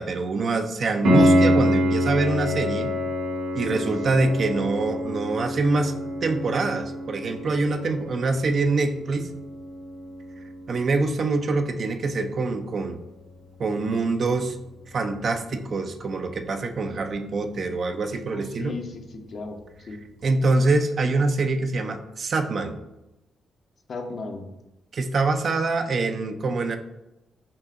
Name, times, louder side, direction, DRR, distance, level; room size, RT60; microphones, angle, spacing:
voice 1, 0.0-2.9 3.5-5.9 6.2-9.3 10.7-13.0 13.6-14.6 14.9-18.7 20.2-22.8 24.9-26.8, right 3 dB, 55° right, 6 dB, 0.5 m, -25 dB
Piano, 1.0-11.7 15.0-15.1, equal, 80° right, 1.0 m, -26 dB
voice 2, 18.1-20.0 23.9-24.4, left 3 dB, 60° left, 4 dB, 0.7 m, -36 dB
5.3 x 2.7 x 2.5 m, 0.95 s
hypercardioid pair, 45°, 0 cm